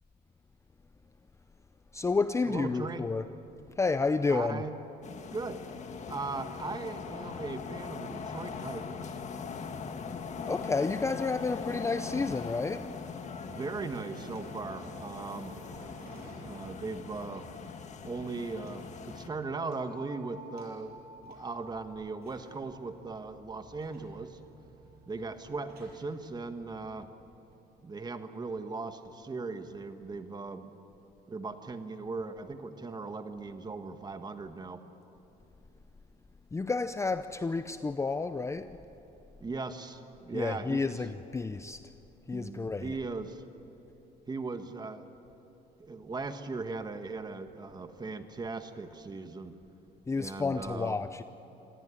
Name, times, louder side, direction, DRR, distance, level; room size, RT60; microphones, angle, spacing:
voice 1, 1.9-3.3 3.8-4.7 10.5-13.0 36.5-38.7 40.3-41.8 42.3-43.0 50.1-51.2, left 4 dB, 15° left, 0.6 m, -30 dB
voice 2, 2.4-3.1 4.3-4.7 5.3-5.6 6.1-9.2 13.2-15.5 16.4-17.5 18.0-20.9 21.2-24.4 25.1-27.1 27.8-30.7 31.3-34.8 39.4-41.1 42.3-43.4 44.3-45.1 45.8-49.6 50.1-51.0, right 3 dB, 25° right, 1.6 m, -38 dB
sound 1, 5.0-19.3, left 5 dB, 45° left, 1.6 m, -41 dB
elevator trip up, 9.9-13.6 13.9-17.2 17.5-17.6 18.7-18.8 19.1-20.1 20.6-27.0, right 2 dB, 70° right, 7.0 m, -55 dB
sound 2, 19.7-25.6, right 1 dB, 55° right, 5.0 m, -53 dB
25.5 x 18.0 x 9.8 m
cardioid pair, 110°, 17 cm